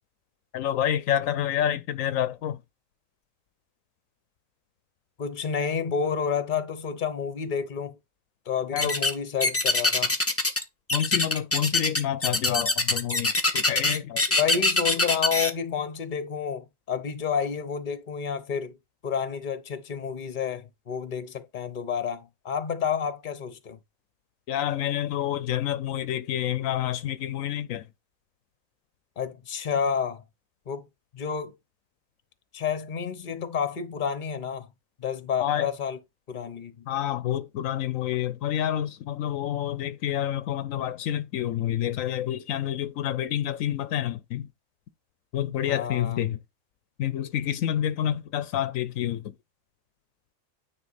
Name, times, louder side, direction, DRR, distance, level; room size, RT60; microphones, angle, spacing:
voice 1, 0.5-2.6 8.7-8.9 10.9-14.2 24.5-27.8 35.4-35.7 36.9-44.5 45.3-46.4 47.0-49.3, left 11 dB, 80° left, 1.0 m, -28 dB
voice 2, 5.2-8.0 8.4-10.1 14.4-18.8 19.0-23.8 29.2-30.2 30.7-30.9 31.1-31.5 32.5-34.7 35.0-36.0 36.3-36.9 45.6-46.3, left 7 dB, 40° left, 1.0 m, -30 dB
sound 1, 8.8-9.1 9.4-10.6 10.9-15.5, left 2 dB, 15° left, 0.8 m, -23 dB
9.6 x 4.0 x 4.1 m
omnidirectional pair, 1.4 m